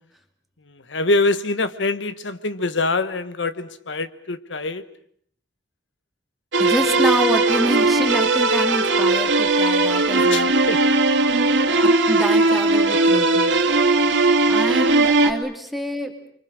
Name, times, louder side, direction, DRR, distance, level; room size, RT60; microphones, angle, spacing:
voice 1, 0.9-4.8 10.3-10.8, left 2 dB, 85° left, 12 dB, 1.2 m, -24 dB
sound 1, 6.5-15.3, right 2 dB, 80° right, 2.4 m, -18 dB
voice 2, 6.6-10.5 11.8-13.5 14.5-16.3, equal, ahead, 4 dB, 2.4 m, -27 dB
30.0 x 24.0 x 6.4 m, 0.63 s
head